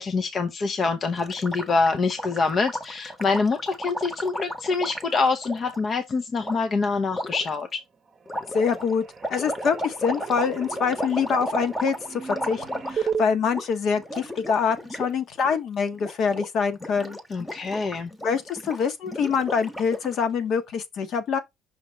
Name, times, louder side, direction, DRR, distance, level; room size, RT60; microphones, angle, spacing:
voice 1, 0.0-7.8 17.3-18.1, left 4 dB, 35° left, 0.7 m, -25 dB
Gurgling, 1.2-5.8 6.4-6.6 7.1-7.5 8.3-13.2 13.5-13.7 13.9-15.1 15.4-15.6 15.9-16.5 16.7-20.2, equal, 10° left, 1.1 m, -34 dB
sound 1, 7.2-7.8 8.1-13.2, right 7 dB, 30° right, 0.8 m, -36 dB
voice 2, 8.5-9.0 9.3-17.2 18.2-21.4, left 6 dB, 50° left, 1.1 m, -25 dB
5.8 x 3.0 x 5.5 m
cardioid pair, 145°, 0 cm